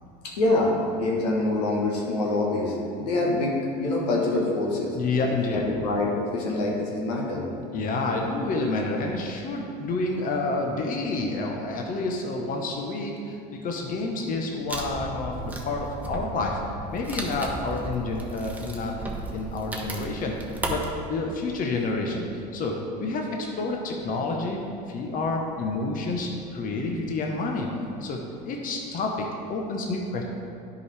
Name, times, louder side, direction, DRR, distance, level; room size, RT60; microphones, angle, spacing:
voice 1, 0.2-5.0 5.5-7.4 25.6-25.7, left 2 dB, 80° left, -2 dB, 1.3 m, -25 dB
voice 2, 4.9-5.6 7.7-13.4 13.6-16.6 16.9-18.9 19.3-22.3 22.5-22.7 23.0-24.6 24.9-27.7 28.0-28.2 28.4-30.2, left 3 dB, 45° left, 1 dB, 1.0 m, -29 dB
Wood, 14.7-20.9, right 1 dB, 10° right, 1.1 m, -35 dB
10.5 x 4.9 x 3.4 m, 2.5 s
hypercardioid pair, 80°, 21 cm